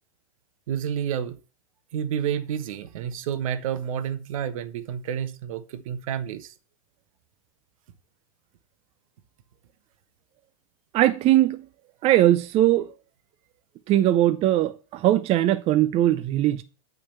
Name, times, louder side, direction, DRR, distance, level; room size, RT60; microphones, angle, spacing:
voice 1, 0.7-1.4 1.9-6.5, right 8 dB, 70° right, 1.1 m, -30 dB
voice 2, 10.9-11.6 12.0-12.9 13.9-16.6, right 13 dB, 35° right, 0.5 m, -20 dB
8.7 x 3.9 x 6.9 m
hypercardioid pair, 110°, 18 cm